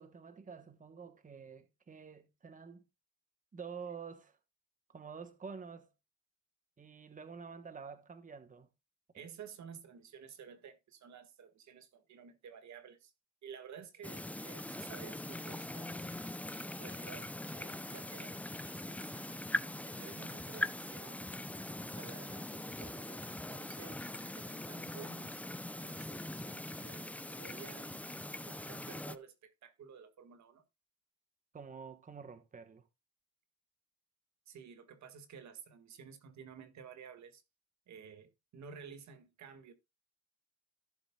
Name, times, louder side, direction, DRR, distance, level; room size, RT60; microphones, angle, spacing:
voice 1, 0.0-2.8 3.5-4.4 4.9-5.9 6.8-8.7 31.5-32.9, right 6 dB, 25° right, 1.1 m, -48 dB
voice 2, 9.1-13.1 13.4-16.4 16.7-18.4 18.6-21.2 21.8-25.4 25.8-28.0 28.5-30.6 34.5-37.4 37.9-39.7, right 7 dB, 65° right, 1.8 m, -53 dB
sound 1, 14.0-29.2, left 1 dB, 5° left, 0.5 m, -42 dB
15.0 x 7.2 x 2.3 m
cardioid pair, 90°, 30 cm